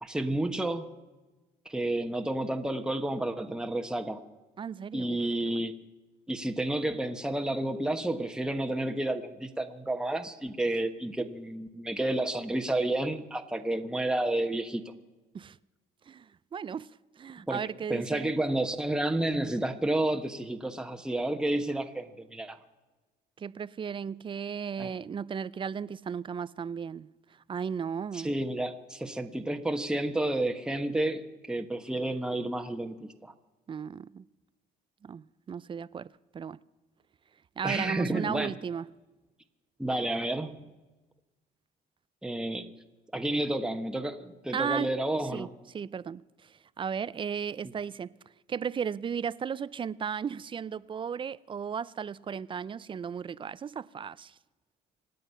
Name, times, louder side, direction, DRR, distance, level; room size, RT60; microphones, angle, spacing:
voice 1, 0.0-1.0 1.6-4.2 4.9-5.7 6.3-14.8 17.5-17.6 17.9-22.6 24.8-24.9 28.1-33.3 37.6-38.6 39.8-40.6 42.2-42.7 43.1-45.5 47.6-47.7, right 1 dB, 5° right, 1.2 m, -30 dB
voice 2, 4.6-5.2 5.5-5.6 15.3-15.6 16.1-16.9 17.2-18.3 23.4-27.1 27.5-28.3 33.7-34.2 35.0-36.6 37.6-38.9 44.5-44.9 45.3-45.5 45.7-46.2 46.8-48.1 48.5-54.3, right 7 dB, 30° right, 0.5 m, -35 dB
25.5 x 9.3 x 5.6 m
cardioid pair, 110°, 17 cm